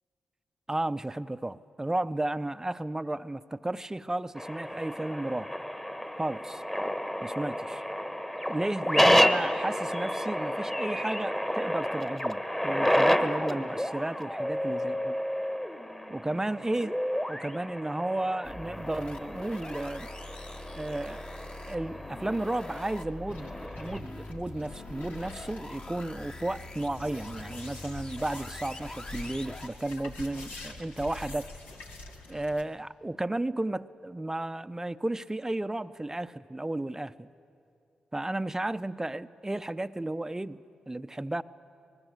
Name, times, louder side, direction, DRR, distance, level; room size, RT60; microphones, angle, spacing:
voice 1, 0.7-5.5 6.2-6.6 7.2-7.8 8.5-15.2 16.1-16.9 17.3-20.1 20.7-21.2 21.6-31.5 32.3-37.3 38.1-40.6 40.9-41.4, right 1 dB, 20° right, 13 dB, 0.6 m, -33 dB
sound 1, 4.4-24.0, equal, 10° left, 1.4 m, -30 dB
sound 2, 18.4-29.7, left 2 dB, 45° left, 2.2 m, -43 dB
sound 3, 23.3-32.6, left 2 dB, 80° left, 2.1 m, -46 dB
25.5 x 20.0 x 8.0 m, 2.6 s
supercardioid pair, 45°, 3 cm